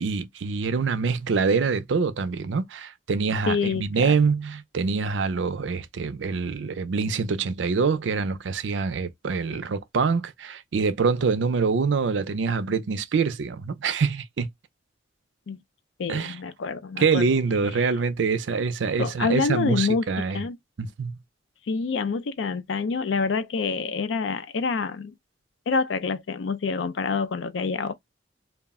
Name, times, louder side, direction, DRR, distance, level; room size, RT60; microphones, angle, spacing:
voice 1, 0.0-14.5 16.1-16.4 17.0-20.4 20.8-21.2, right 5 dB, 80° right, 0.5 m, -25 dB
voice 2, 3.5-4.1 15.5-15.6 16.0-17.3 19.0-20.6 21.7-25.1 25.7-27.9, left 4 dB, 75° left, 0.4 m, -27 dB
2.3 x 2.0 x 3.5 m
head